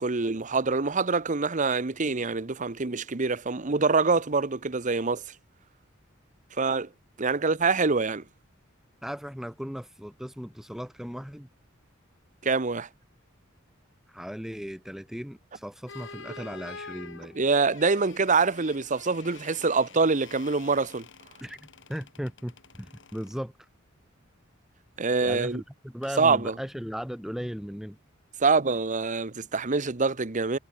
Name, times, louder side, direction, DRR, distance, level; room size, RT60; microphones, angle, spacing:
voice 1, 0.0-5.2 6.6-6.9 7.2-8.2 12.4-12.9 17.3-21.1 25.0-25.6 26.2-26.5 28.4-30.6, right 4 dB, 40° right, 1.0 m, -25 dB
voice 2, 9.0-11.5 14.1-17.4 21.4-23.5 25.2-28.0, equal, ahead, 0.9 m, -37 dB
sound 1, 15.9-23.4 26.0-26.2, left 4 dB, 65° left, 5.0 m, -47 dB
head